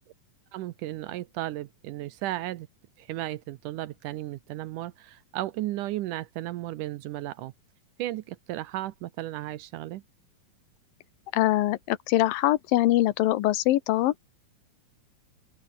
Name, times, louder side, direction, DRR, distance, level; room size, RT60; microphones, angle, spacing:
voice 1, 0.5-2.7 3.0-7.5 8.0-10.0, right 15 dB, 75° right, 2.1 m, -34 dB
voice 2, 11.3-14.1, left 15 dB, 85° left, 2.7 m, -23 dB
open air
omnidirectional pair, 4.0 m